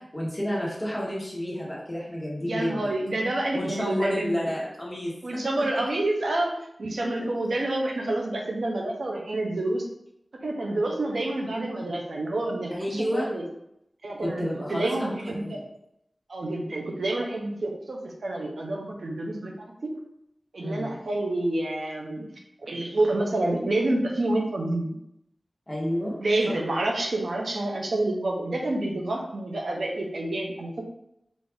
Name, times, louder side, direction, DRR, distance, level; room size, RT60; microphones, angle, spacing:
voice 1, 0.0-2.9 3.5-5.4 7.0-7.1 12.7-13.3 14.2-15.6 20.6-20.9 25.7-26.2, equal, 25° left, -5 dB, 1.2 m, -30 dB
voice 2, 2.4-4.5 5.2-9.8 10.4-13.4 14.0-15.6 16.3-19.5 19.8-19.9 20.5-22.3 22.6-25.0 26.2-30.9, right 2 dB, 85° right, 1 dB, 0.6 m, -28 dB
4.0 x 2.5 x 3.5 m, 0.79 s
wide cardioid pair, 70°, 0 cm